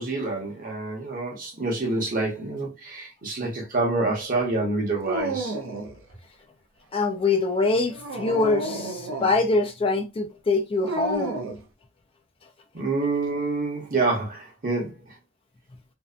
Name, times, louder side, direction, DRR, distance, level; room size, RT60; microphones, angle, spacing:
voice 1, 0.0-5.5 12.7-15.0, right 3 dB, 45° right, 0.9 m, -27 dB
Dog, 5.0-6.0 7.9-9.4 10.9-11.6, right 2 dB, 80° right, 0.5 m, -30 dB
voice 2, 6.9-11.4, left 3 dB, 30° left, 0.3 m, -24 dB
2.6 x 2.1 x 2.4 m
head